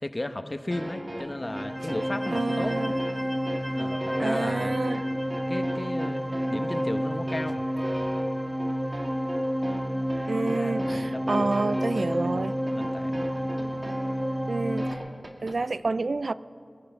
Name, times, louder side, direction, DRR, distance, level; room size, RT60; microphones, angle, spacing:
voice 1, 0.0-2.8 3.7-4.8 5.5-7.6 10.4-12.0 12.2-12.4 12.7-13.3, left 1 dB, 35° left, 8 dB, 0.9 m, -35 dB
sound 1, 0.7-15.6, right 1 dB, 45° right, 1.9 m, -38 dB
sound 2, 1.4-14.9, equal, 5° right, 1.2 m, -30 dB
voice 2, 2.3-2.9 4.2-5.0 10.3-12.6 14.5-15.0 15.4-16.3, right 3 dB, 75° right, 16 dB, 0.3 m, -29 dB
23.0 x 10.0 x 5.6 m, 2.4 s
wide cardioid pair, 60°, 0 cm